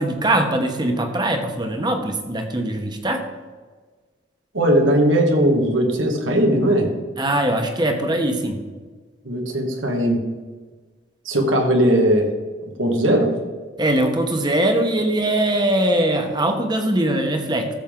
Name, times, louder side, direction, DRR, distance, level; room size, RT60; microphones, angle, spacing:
voice 1, 0.0-3.2 7.2-8.6 13.8-17.7, right 1 dB, 25° right, 4 dB, 1.2 m, -21 dB
voice 2, 4.5-6.9 9.2-10.2 11.3-12.3 12.8-13.3, right 1 dB, 90° right, 2 dB, 1.9 m, -18 dB
15.0 x 7.2 x 3.9 m, 1.4 s
head